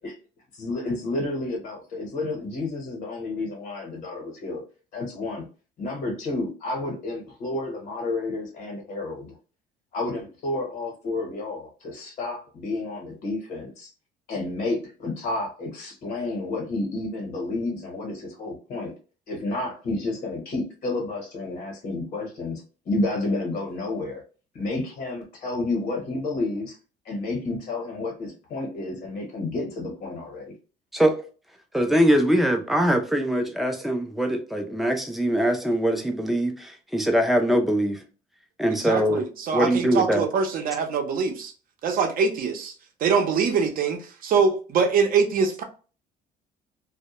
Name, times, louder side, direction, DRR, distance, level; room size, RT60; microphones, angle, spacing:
voice 1, 0.5-4.6 4.9-5.5 5.8-9.3 9.9-13.9 14.3-18.9 19.3-24.2 24.5-26.8 27.0-30.5, left 2 dB, 65° left, 0.9 m, -30 dB
voice 2, 31.7-38.0 38.6-39.2 39.5-40.3, equal, ahead, 0.4 m, -22 dB
voice 3, 38.8-41.5 41.8-42.7 43.0-45.6, right 5 dB, 55° right, 0.6 m, -23 dB
2.1 x 2.1 x 2.8 m
cardioid pair, 110°, 17 cm